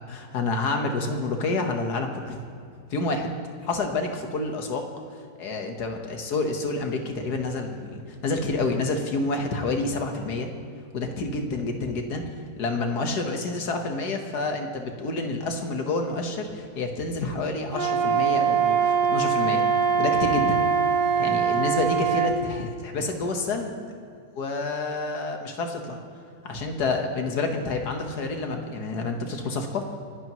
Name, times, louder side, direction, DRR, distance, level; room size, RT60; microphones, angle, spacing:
voice 1, 0.1-2.4 2.9-3.3 3.6-4.8 5.4-10.5 10.9-12.2 12.6-19.6 20.0-20.6 21.2-23.7 24.4-26.0 26.4-29.8, left 3 dB, 85° left, 4 dB, 1.9 m, -28 dB
Wind instrument woodwind instrument, 17.7-22.3, right 6 dB, 25° right, 2.3 m, -22 dB
29.5 x 11.5 x 3.1 m, 2.4 s
omnidirectional pair, 1.7 m